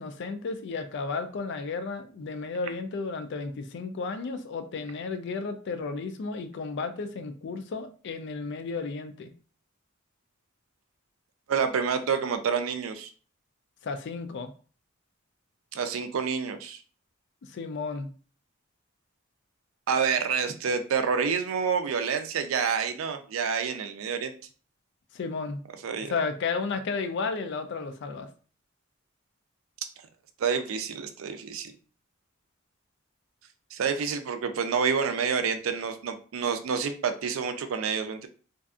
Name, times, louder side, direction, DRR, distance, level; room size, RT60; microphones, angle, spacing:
voice 1, 0.0-9.3 13.8-14.5 17.4-18.1 25.1-25.6 26.1-28.3, left 4 dB, 60° left, 0.4 m, -33 dB
voice 2, 11.5-13.1 15.7-16.8 19.9-24.4 25.8-26.1 30.4-31.7 33.7-38.3, right 6 dB, 75° right, 0.4 m, -28 dB
2.6 x 2.4 x 2.4 m
head